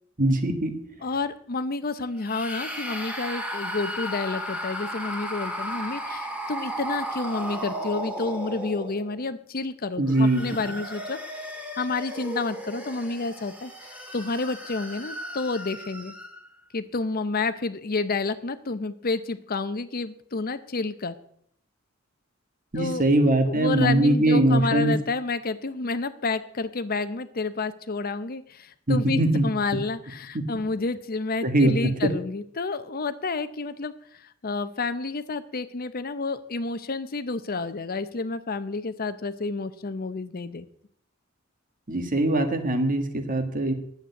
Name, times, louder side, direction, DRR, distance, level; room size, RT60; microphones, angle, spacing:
voice 1, 0.2-0.8 10.0-10.7 22.7-25.0 28.9-29.4 30.3-30.4 31.4-31.7 41.9-43.7, right 1 dB, 40° right, 7 dB, 1.6 m, -22 dB
voice 2, 1.0-11.2 11.8-16.1 16.7-21.2 22.7-23.0 23.5-40.7, left 3 dB, 45° left, 12 dB, 0.7 m, -30 dB
sound 1, 2.2-9.3 10.0-16.5, equal, 5° right, 2.1 m, -35 dB
10.5 x 8.2 x 8.0 m, 0.66 s
head